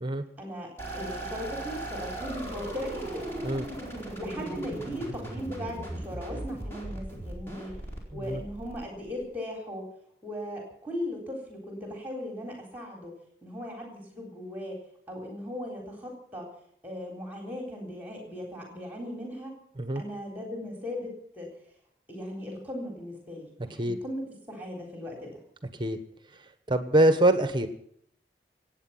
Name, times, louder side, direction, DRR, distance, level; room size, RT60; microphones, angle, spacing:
voice 1, 0.4-3.3 4.2-7.8 8.1-9.9 10.2-13.1 13.4-14.8 15.1-16.5 16.8-19.6 19.9-21.5 22.1-25.4, equal, 10° right, 1 dB, 3.7 m, -38 dB
sound 1, 0.8-9.2, right 1 dB, 15° left, 4.6 m, -38 dB
voice 2, 26.7-27.7, right 1 dB, 25° right, 9 dB, 1.3 m, -24 dB
26.0 x 9.1 x 5.8 m, 0.66 s
head